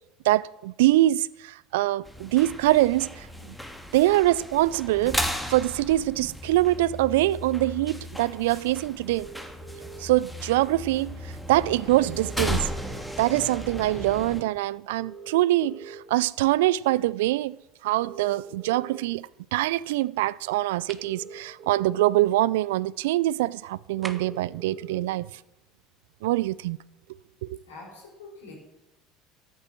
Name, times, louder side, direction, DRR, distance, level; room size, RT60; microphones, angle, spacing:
voice 1, 0.2-3.6 3.9-9.3 10.0-11.2 11.5-12.7 13.2-17.6 17.8-25.3 26.2-26.8 27.4-27.6, right 16 dB, 70° right, 0.4 m, -24 dB
sound 1, 2.0-14.4, equal, ahead, 2.0 m, -35 dB
sound 2, 9.0-10.0 12.0-13.0 15.0-16.0 18.0-19.0 21.0-22.0 24.0-25.0, right 5 dB, 50° right, 3.0 m, -43 dB
sound 3, 20.9-21.1 24.0-24.5, right 4 dB, 25° right, 1.2 m, -40 dB
voice 2, 27.6-28.5, left 3 dB, 80° left, 4.8 m, -45 dB
13.0 x 8.7 x 7.4 m
hypercardioid pair, 70°, 0 cm